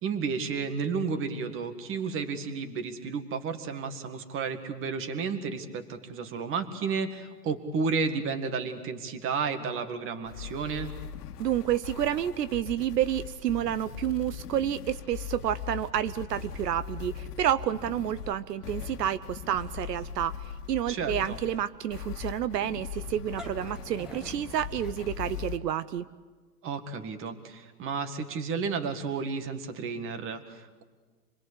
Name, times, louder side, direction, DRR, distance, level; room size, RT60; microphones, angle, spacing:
voice 1, 0.0-10.9 20.9-21.4 26.6-30.8, right 5 dB, 25° right, 9 dB, 2.0 m, -32 dB
sound 1, 10.2-25.6, left 9 dB, 80° left, 1.8 m, -40 dB
voice 2, 11.4-20.3 20.7-26.1, right 11 dB, 85° right, 15 dB, 0.9 m, -29 dB
sound 2, 23.3-25.7, left 1 dB, ahead, 1.5 m, -47 dB
27.0 x 20.5 x 8.3 m, 1.4 s
hypercardioid pair, 135°, 47 cm